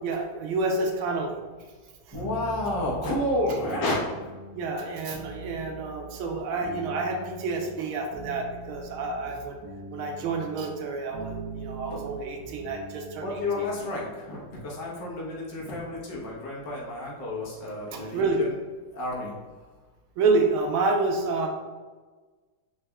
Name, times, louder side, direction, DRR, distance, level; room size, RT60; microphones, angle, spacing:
voice 1, 0.0-1.3 4.5-9.6 9.9-13.7 17.9-18.4 20.2-21.5, right 3 dB, 90° right, 2 dB, 1.4 m, -28 dB
voice 2, 2.1-4.0 11.9-12.0 13.2-18.5 18.9-19.3, left 1 dB, 65° left, -5 dB, 1.6 m, -30 dB
sound 1, 2.1-14.0, right 2 dB, 65° right, 1.2 m, -42 dB
4.6 x 3.5 x 2.2 m, 1.4 s
omnidirectional pair, 2.2 m